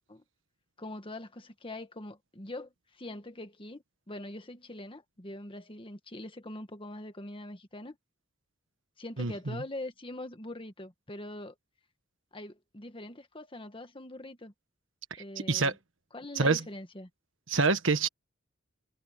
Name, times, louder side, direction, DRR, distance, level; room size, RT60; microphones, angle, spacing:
voice 1, 0.8-8.0 9.0-11.5 12.3-14.5 15.2-15.7 16.1-17.1, left 1 dB, 25° left, 1.6 m, -43 dB
voice 2, 9.2-9.6 15.5-15.7 16.4-16.6 17.5-18.1, right 4 dB, 70° right, 1.5 m, -26 dB
head